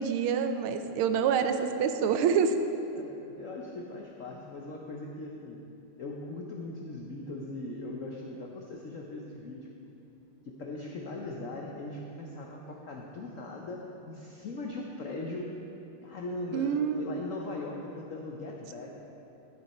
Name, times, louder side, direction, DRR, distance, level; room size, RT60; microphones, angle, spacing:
voice 1, 0.0-2.5 16.5-17.0, right 7 dB, 80° right, 8 dB, 1.4 m, -26 dB
voice 2, 2.9-5.6 6.0-9.7 10.4-15.5 16.0-19.0, left 2 dB, 85° left, -1 dB, 0.7 m, -40 dB
13.0 x 6.6 x 4.2 m, 2.8 s
omnidirectional pair, 2.4 m